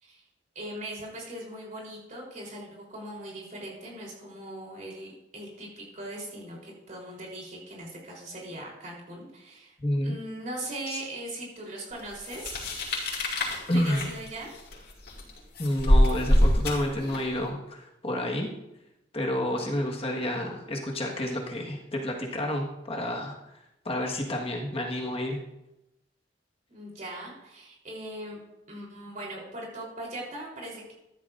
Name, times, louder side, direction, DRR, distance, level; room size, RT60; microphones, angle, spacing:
voice 1, 0.6-9.8 10.0-12.6 13.7-14.5 26.7-28.4 28.7-30.9, right 1 dB, 45° right, -3 dB, 3.7 m, -40 dB
voice 2, 9.8-10.1 10.9-11.0 13.7-14.1 15.6-18.5 19.1-23.4 23.8-25.4, left 1 dB, 35° left, 0 dB, 1.5 m, -30 dB
sound 1, 12.2-17.4, left 1 dB, 65° left, 4.6 m, -25 dB
14.5 x 12.5 x 2.6 m, 0.90 s
head